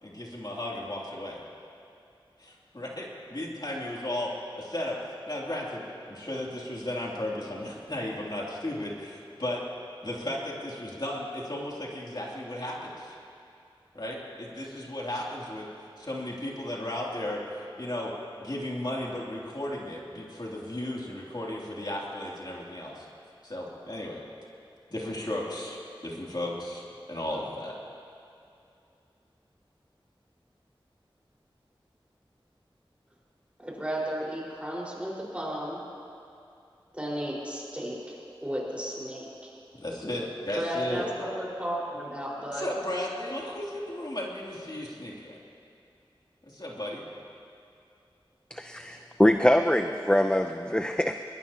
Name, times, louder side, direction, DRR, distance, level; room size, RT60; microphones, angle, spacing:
voice 1, 0.0-1.4 2.4-4.3 4.5-5.0 5.3-9.6 10.0-13.1 13.9-15.7 16.0-18.1 18.4-23.1 23.4-24.2 24.9-25.8 26.0-26.8 27.1-27.8 39.8-41.1 42.5-45.4 46.5-47.0, left 1 dB, 50° left, -4 dB, 2.9 m, -35 dB
voice 2, 33.6-35.8 36.9-39.3 40.6-42.6, equal, 15° right, -4 dB, 4.8 m, -34 dB
voice 3, 48.5-51.2, left 1 dB, 10° left, 6 dB, 0.6 m, -24 dB
21.5 x 21.0 x 2.9 m, 2.6 s
wide cardioid pair, 50°, 9 cm